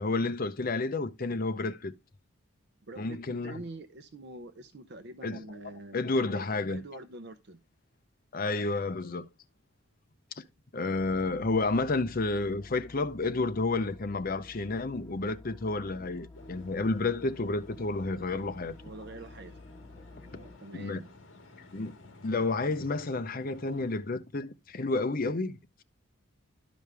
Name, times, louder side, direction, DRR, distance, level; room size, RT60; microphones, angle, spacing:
voice 1, 0.0-1.9 3.0-3.6 5.2-5.4 5.9-6.8 8.3-9.3 10.4-10.5 10.7-18.7 20.7-21.0 21.7-21.9 22.2-25.8, left 3 dB, 40° left, 0.7 m, -30 dB
voice 2, 2.9-6.0 6.3-7.6 18.8-19.5 20.2-21.1, right 2 dB, 50° right, 0.7 m, -45 dB
sound 1, 10.9-20.6, left 2 dB, 15° left, 0.3 m, -51 dB
sound 2, 16.3-24.0, left 2 dB, 60° left, 2.0 m, -54 dB
12.0 x 5.1 x 3.3 m
head